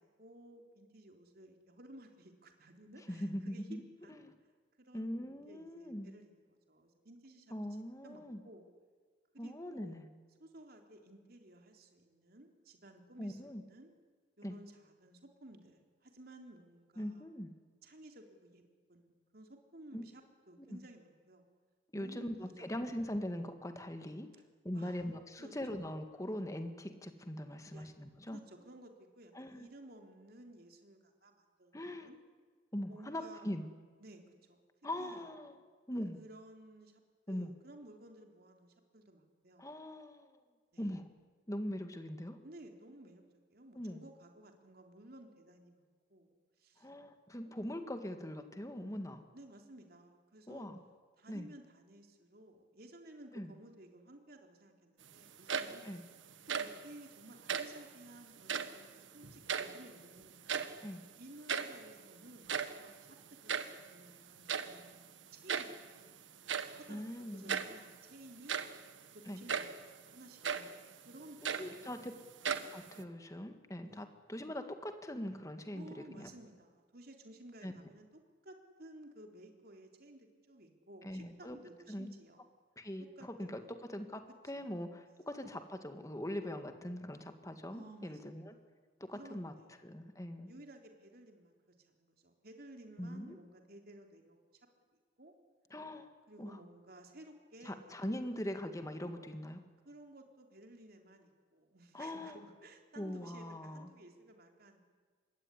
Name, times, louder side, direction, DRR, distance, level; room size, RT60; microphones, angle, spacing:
voice 1, 0.0-4.2 4.8-6.4 6.7-7.5 8.0-8.7 9.3-10.0 10.4-13.9 14.4-17.3 17.8-18.6 18.9-21.5 21.9-22.7 24.7-25.1 25.4-25.5 27.5-27.9 28.3-32.2 32.9-33.5 34.0-34.2 34.5-34.6 35.0-35.2 36.1-37.0 37.3-39.7 40.7-40.9 42.4-43.2 43.5-45.8 46.1-46.3 46.6-46.9 49.3-50.7 51.2-55.9 56.5-60.4 61.2-63.2 63.4-66.1 66.7-68.6 69.1-69.7 70.0-72.0 73.8-74.1 74.5-74.6 75.7-78.1 78.4-82.5 83.2-83.8 84.5-84.6 85.1-85.2 87.7-88.4 89.1-89.7 90.5-91.6 91.9-94.5 95.2-95.3 96.3-98.4 99.9-104.8, right 1 dB, 55° right, 4 dB, 3.6 m, -56 dB
voice 2, 3.1-3.8 4.1-4.3 4.9-6.1 7.5-8.4 9.4-10.1 13.2-13.6 14.4-14.5 17.0-17.5 19.9-20.0 20.7-20.8 21.9-24.3 24.6-28.4 29.3-29.7 31.7-32.1 32.7-33.7 34.8-35.6 35.9-36.2 37.3-37.5 39.6-40.4 40.8-41.1 41.5-42.4 43.7-44.0 46.8-49.2 50.5-50.8 51.3-51.5 53.3-53.5 55.8-56.0 60.8-61.0 66.9-67.6 69.3-69.4 71.6-72.1 72.7-76.3 77.6-77.7 81.0-81.6 81.9-82.1 82.8-83.6 83.9-88.5 89.0-89.5 89.8-90.5 93.0-93.4 95.7-96.1 96.4-96.6 97.6-99.6 101.9-102.4 103.0-103.9, left 1 dB, 15° left, 7 dB, 1.9 m, -41 dB
sound 1, 55.3-56.0 56.3-56.9 57.4-57.8 58.4-58.9 59.2-60.0 60.3-60.9 61.2-61.3 61.5-61.8 62.3-63.8 64.5-64.8 65.5-65.9 66.5-66.8 67.5-67.8 68.3-68.8 69.5-69.8 70.4-70.8 71.2-72.1 72.4-73.0, right 6 dB, 85° right, 1.5 m, -37 dB
26.0 x 21.0 x 10.0 m, 1.5 s
head